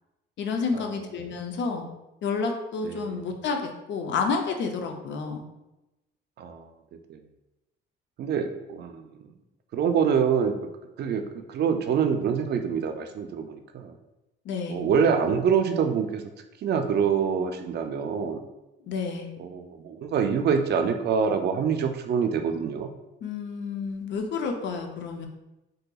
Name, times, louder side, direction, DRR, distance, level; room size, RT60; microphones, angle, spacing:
voice 1, 0.4-1.9 2.2-5.4 14.4-14.8 18.9-19.3 23.2-25.3, left 4 dB, 65° left, 4 dB, 0.5 m, -30 dB
voice 2, 2.8-3.2 6.4-6.7 7.1-7.2 8.2-9.1 9.7-10.6 11.0-13.9 14.7-16.2 16.6-18.4 19.4-22.9, right 7 dB, 55° right, 6 dB, 0.4 m, -25 dB
3.8 x 2.7 x 2.3 m, 0.96 s
cardioid pair, 90°, 20 cm